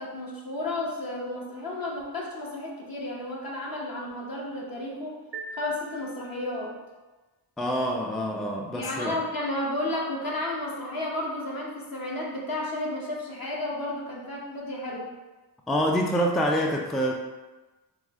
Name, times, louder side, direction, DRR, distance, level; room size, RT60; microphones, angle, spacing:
voice 1, 0.0-5.2 5.5-6.7 8.7-15.1, left 1 dB, 55° left, -3 dB, 1.0 m, -32 dB
sound 1, 5.3-6.8, right 2 dB, 75° right, 0.5 m, -42 dB
voice 2, 7.6-9.2 15.7-17.1, equal, ahead, 1 dB, 0.3 m, -26 dB
4.7 x 2.1 x 3.5 m, 1.2 s
wide cardioid pair, 70°, 41 cm